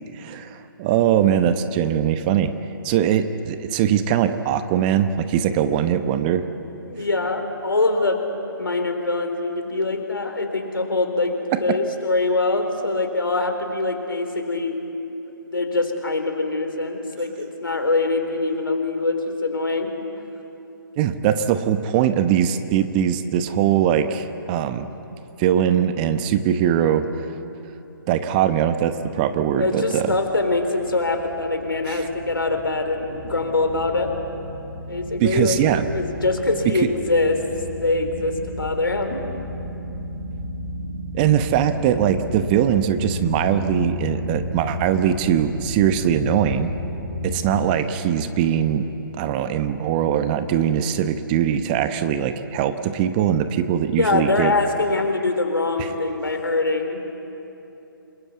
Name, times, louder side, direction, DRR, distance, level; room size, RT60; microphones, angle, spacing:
voice 1, 0.0-2.5 2.8-6.4 21.0-24.9 25.4-27.1 28.1-30.1 31.9-32.1 35.2-35.8 41.1-46.7 47.2-48.9 49.2-54.5 55.8-55.9, right 9 dB, 25° right, 10 dB, 0.9 m, -21 dB
voice 2, 6.9-14.8 15.5-19.9 29.6-34.1 34.9-35.6 35.9-37.4 37.7-39.2 53.9-57.1, left 3 dB, 75° left, 5 dB, 4.0 m, -23 dB
sound 1, 30.0-47.7, left 1 dB, 20° left, 5.7 m, -33 dB
28.5 x 21.5 x 8.3 m, 2.9 s
figure-of-eight pair, 135°, 12 cm